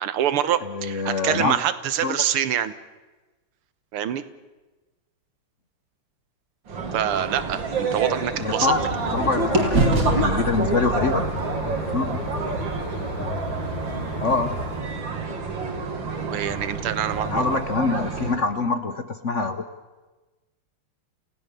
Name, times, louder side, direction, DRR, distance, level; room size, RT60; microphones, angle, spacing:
voice 1, 0.0-2.7 3.9-4.2 6.9-8.7 16.3-17.6, right 10 dB, 90° right, 14 dB, 2.0 m, -25 dB
voice 2, 0.6-1.6 2.0-2.2 8.4-8.8 9.1-11.2 11.9-12.2 14.2-14.6 17.2-19.6, left 4 dB, 50° left, 10 dB, 1.0 m, -25 dB
sound 1, 6.7-18.4, right 3 dB, 60° right, 2.9 m, -29 dB
sound 2, 6.8-9.2 9.5-13.5, right 2 dB, 40° right, 2.8 m, -28 dB
sound 3, 8.7-14.8, left 1 dB, 70° left, 4.3 m, -33 dB
29.0 x 17.0 x 6.9 m, 1.2 s
omnidirectional pair, 2.4 m